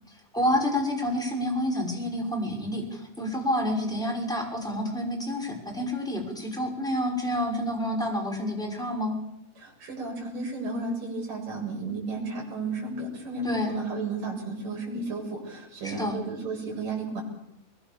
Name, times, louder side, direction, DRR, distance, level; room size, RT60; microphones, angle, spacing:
voice 1, 0.1-9.2 13.4-13.7 15.8-16.2, left 1 dB, ahead, 0 dB, 5.8 m, -29 dB
voice 2, 9.6-17.2, right 2 dB, 50° right, -2 dB, 8.8 m, -33 dB
23.5 x 23.0 x 7.2 m, 0.82 s
omnidirectional pair, 5.0 m